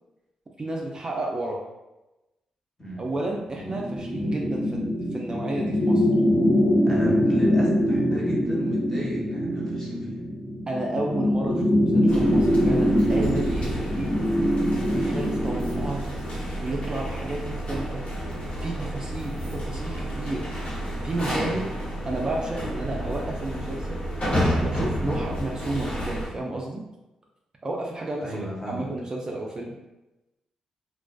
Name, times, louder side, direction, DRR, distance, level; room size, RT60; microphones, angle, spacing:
voice 1, 0.6-1.7 3.0-6.1 10.7-14.3 14.9-16.2 16.6-18.0 18.6-20.5 21.0-21.7 22.0-24.0 24.6-26.9 27.6-28.4 28.7-29.8, right 2 dB, 35° right, -1 dB, 0.4 m, -32 dB
sound 1, 3.5-16.0, equal, 35° left, 0.7 m, -23 dB
voice 2, 6.9-10.2 21.3-21.6 28.2-28.9, equal, 20° left, -5 dB, 1.1 m, -34 dB
sound 2, 12.1-26.3, equal, 55° left, 1.0 m, -30 dB
2.3 x 2.2 x 2.3 m, 1.0 s
supercardioid pair, 45°, 2 cm